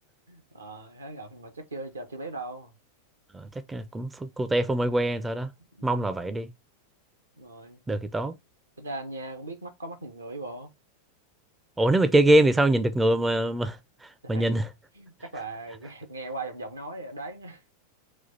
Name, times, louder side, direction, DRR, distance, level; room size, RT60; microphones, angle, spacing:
voice 1, 0.3-2.7 5.7-6.0 7.4-7.8 8.8-10.7 14.2-14.6 14.9-17.6, right 2 dB, 75° right, 0.8 m, -39 dB
voice 2, 3.3-5.5 5.8-6.5 7.9-8.4 11.8-13.8 14.3-14.7, right 1 dB, 10° right, 0.4 m, -23 dB
4.3 x 2.3 x 4.1 m
figure-of-eight pair, 90°, 0 cm